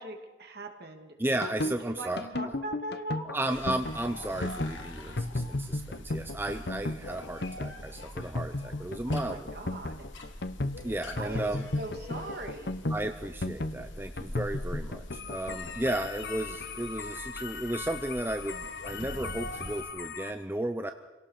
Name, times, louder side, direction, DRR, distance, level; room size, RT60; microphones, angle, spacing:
voice 1, 0.0-1.2 1.6-3.3 9.1-10.1 11.1-12.7, right 1 dB, 50° right, 4 dB, 2.6 m, -40 dB
voice 2, 1.2-2.3 3.3-9.6 10.8-11.7 12.9-20.9, right 1 dB, 10° right, 7 dB, 0.6 m, -34 dB
sound 1, 1.3-20.3, left 2 dB, 55° left, 0.9 m, -35 dB
sound 2, 3.5-19.8, left 1 dB, 75° left, 2.5 m, -44 dB
27.0 x 17.5 x 6.6 m, 1.2 s
head